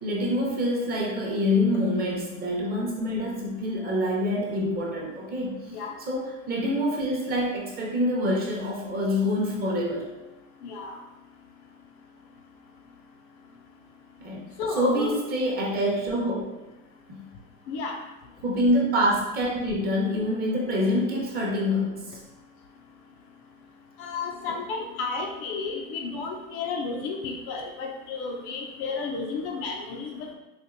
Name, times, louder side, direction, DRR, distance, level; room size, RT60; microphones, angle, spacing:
voice 1, 0.0-5.8 6.1-10.1 14.2-14.4 14.8-16.5 17.1-17.2 18.4-22.2, left 1 dB, 25° right, -3 dB, 0.7 m, -26 dB
voice 2, 10.6-11.0 14.6-15.2 17.7-18.0 24.0-30.3, left 4 dB, 45° left, 2 dB, 0.5 m, -32 dB
4.3 x 2.5 x 2.5 m, 1.0 s
supercardioid pair, 135°, 37 cm